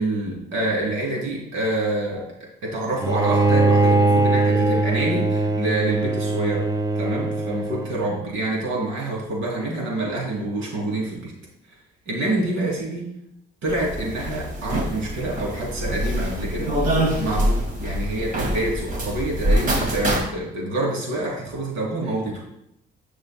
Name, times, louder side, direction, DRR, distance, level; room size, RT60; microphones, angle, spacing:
voice 1, 0.0-2.3 2.6-6.7 7.0-11.3 12.1-13.1 13.6-22.4, right 2 dB, 85° right, -2 dB, 2.9 m, -27 dB
Bowed string instrument, 3.0-8.2, right 3 dB, 20° right, 0.6 m, -21 dB
sound 1, 13.7-20.2, equal, 45° right, 1.8 m, -25 dB
10.5 x 6.2 x 2.3 m, 0.79 s
cardioid pair, 90°, 20 cm